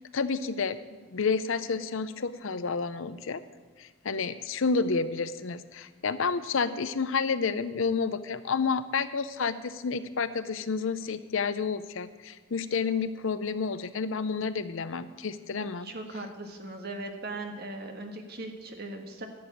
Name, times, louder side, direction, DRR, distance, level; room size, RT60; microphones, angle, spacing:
voice 1, 0.1-0.8 1.1-3.4 3.8-15.9, left 5 dB, 60° left, 13 dB, 0.6 m, -30 dB
voice 2, 15.8-19.3, right 2 dB, 45° right, 4 dB, 1.4 m, -39 dB
11.5 x 7.0 x 9.2 m, 1.4 s
head